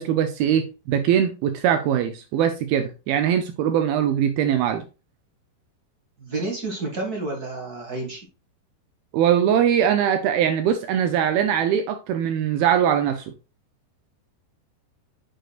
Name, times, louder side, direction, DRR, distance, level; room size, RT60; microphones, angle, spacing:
voice 1, 0.0-4.8 9.1-13.3, right 9 dB, 80° right, 2.3 m, -21 dB
voice 2, 6.2-8.2, right 2 dB, 35° right, 1.5 m, -30 dB
9.2 x 6.4 x 2.4 m
omnidirectional pair, 4.8 m